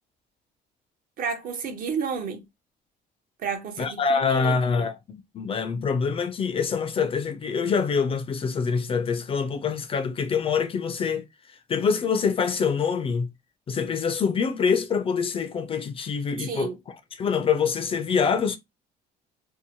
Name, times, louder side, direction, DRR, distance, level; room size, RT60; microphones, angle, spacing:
voice 1, 1.2-2.4 3.4-4.9 16.4-16.8, right 6 dB, 55° right, 0.7 m, -31 dB
voice 2, 3.8-11.3 11.7-13.3 13.7-16.7 17.2-18.6, left 6 dB, 35° left, 0.4 m, -25 dB
2.7 x 2.0 x 2.7 m
cardioid pair, 110°, 17 cm